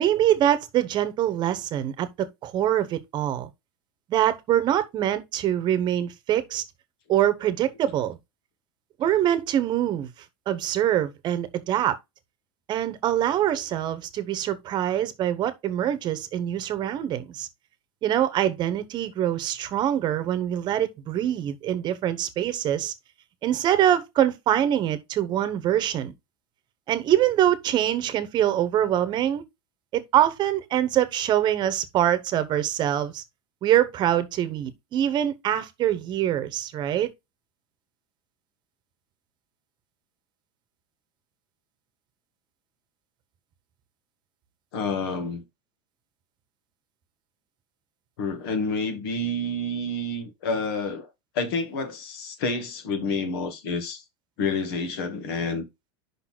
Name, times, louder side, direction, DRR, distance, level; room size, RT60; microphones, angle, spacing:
voice 1, 0.0-3.5 4.1-6.6 7.1-8.2 9.0-10.1 10.5-12.0 12.7-17.5 18.0-22.9 23.4-26.1 26.9-29.4 29.9-33.2 33.6-37.1, right 11 dB, 35° right, 0.9 m, -24 dB
voice 2, 44.7-45.4 48.2-51.1 51.3-54.0 54.4-55.6, left 3 dB, 80° left, 1.9 m, -29 dB
5.6 x 3.9 x 5.9 m
supercardioid pair, 150°, 12 cm